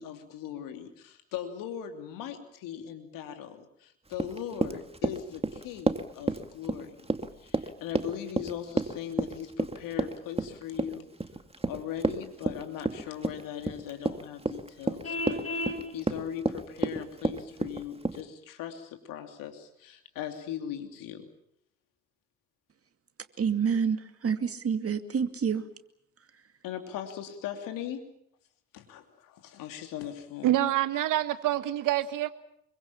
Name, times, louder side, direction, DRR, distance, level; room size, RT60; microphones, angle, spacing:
voice 1, 0.0-7.1 7.4-11.1 11.7-21.3 26.6-28.0 28.7-30.6, left 9 dB, 75° left, 6 dB, 2.9 m, -39 dB
Run, 4.1-18.2, right 2 dB, 20° right, 2.4 m, -31 dB
Vehicle horn car horn honking, 15.0-15.8, left 2 dB, 45° left, 5.5 m, -32 dB
voice 2, 23.4-25.6, right 6 dB, 45° right, 8 dB, 2.4 m, -28 dB
voice 3, 30.4-32.3, right 13 dB, 70° right, 12 dB, 1.5 m, -26 dB
25.5 x 23.0 x 7.2 m, 0.73 s
hypercardioid pair, 45°, 33 cm